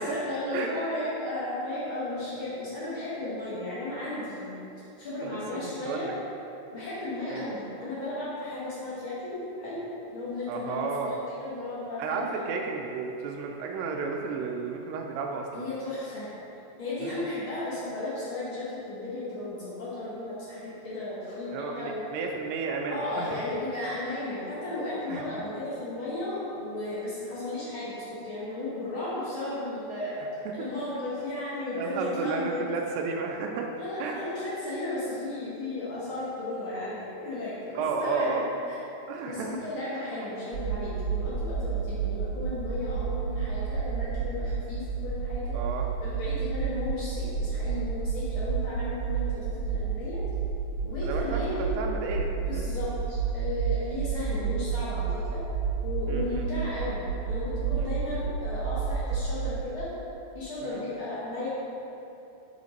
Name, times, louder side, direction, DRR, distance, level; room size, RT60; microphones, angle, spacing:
voice 1, 0.0-4.6 5.0-6.1 6.7-9.8 10.1-12.5 15.5-16.3 16.8-21.5 21.7-22.0 22.9-32.9 33.7-38.8 39.2-45.6 46.0-50.2 50.8-51.7 52.5-55.4 55.8-59.9 60.3-61.5, left 2 dB, 65° left, -9 dB, 1.3 m, -34 dB
voice 2, 5.2-6.1 7.3-7.4 10.5-11.2 12.0-15.6 17.0-17.2 21.5-23.4 25.1-25.2 30.5-30.7 31.8-33.7 34.0-34.2 37.7-38.5 39.1-39.6 45.5-45.9 51.0-51.4 51.8-52.7 56.1-56.5 57.8-57.9 60.6-60.8, right 4 dB, 85° right, 1 dB, 2.2 m, -33 dB
sound 1, 40.5-59.5, right 6 dB, 60° right, 1.7 m, -31 dB
5.8 x 4.9 x 4.1 m, 2.9 s
omnidirectional pair, 3.9 m